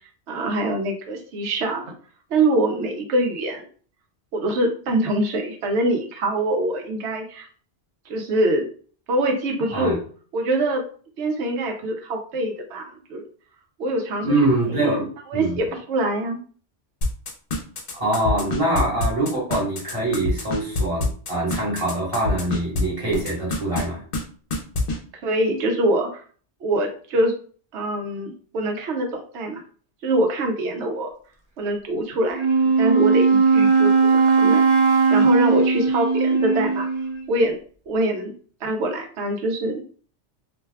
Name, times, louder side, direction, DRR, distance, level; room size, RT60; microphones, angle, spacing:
voice 1, 0.3-1.8 2.3-3.6 4.3-7.5 8.1-8.7 9.1-10.0 10.3-10.8 11.2-12.8 13.1-13.2 13.8-14.4 14.8-16.4 25.2-26.2 26.6-27.3 27.7-29.6 30.0-31.1 31.6-32.5 32.8-34.6 35.1-36.9 37.3-37.6 37.9-38.3 38.6-39.8, right 1 dB, 75° right, 2 dB, 0.9 m, -24 dB
voice 2, 14.2-15.6 17.9-24.0, right 1 dB, 30° right, -6 dB, 1.1 m, -24 dB
sound 1, 17.0-22.8 23.1-23.8 24.1-24.2 24.5-25.0, left 3 dB, 55° left, 0.8 m, -25 dB
Wind instrument woodwind instrument, 32.3-37.2, right 4 dB, 50° right, 0.3 m, -18 dB
2.5 x 2.2 x 3.3 m, 0.43 s
omnidirectional pair, 1.2 m